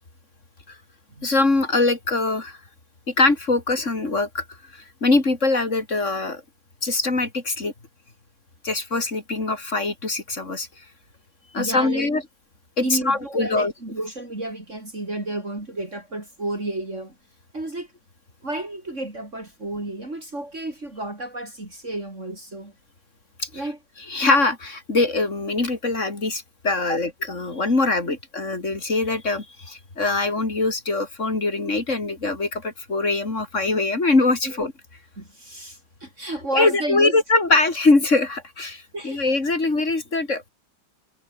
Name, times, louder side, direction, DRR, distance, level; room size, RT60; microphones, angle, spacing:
voice 1, 1.2-2.6 3.1-4.4 4.7-6.4 6.8-7.7 8.6-10.7 11.5-12.2 12.8-13.7 23.4-23.5 24.1-34.7 36.5-40.4, left 3 dB, 40° left, 4.0 m, -22 dB
voice 2, 11.6-12.2 12.8-17.2 17.5-17.9 18.4-22.7 23.5-23.8 26.9-27.0 28.1-28.2 34.4-34.6 35.2-37.2 37.5-37.6 38.9-39.3, right 2 dB, 40° right, 5.2 m, -31 dB
omnidirectional pair, 1.9 m